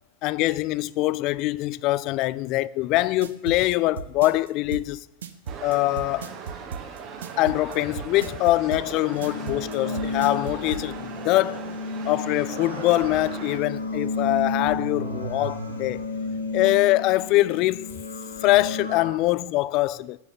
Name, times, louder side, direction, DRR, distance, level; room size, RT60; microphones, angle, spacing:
voice 1, 0.2-5.0 5.6-6.3 7.4-11.6 12.0-16.0 16.5-17.9 18.4-20.2, left 17 dB, 40° left, 0.3 m, -23 dB
sound 1, 3.0-10.8, right 7 dB, 65° right, 0.7 m, -35 dB
sound 2, 5.5-13.6, right 6 dB, 35° right, 1.3 m, -39 dB
sound 3, 9.1-19.1, left 3 dB, 85° left, 2.0 m, -32 dB
8.0 x 7.1 x 6.7 m
figure-of-eight pair, 90°, 0 cm